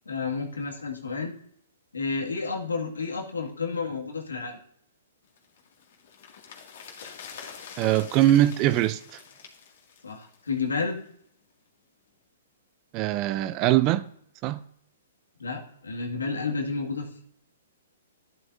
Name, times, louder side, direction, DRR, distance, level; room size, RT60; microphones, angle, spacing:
voice 1, 0.1-1.3 1.9-4.6 10.0-11.0 15.4-17.2, left 4 dB, 90° left, 2.1 m, -31 dB
sound 1, 5.4-10.8 11.0-11.1, left 6 dB, 60° left, 2.3 m, -45 dB
voice 2, 7.8-9.2 12.9-14.0 14.4-14.6, right 14 dB, 35° right, 0.5 m, -22 dB
11.5 x 11.0 x 2.7 m
hypercardioid pair, 125°, 0 cm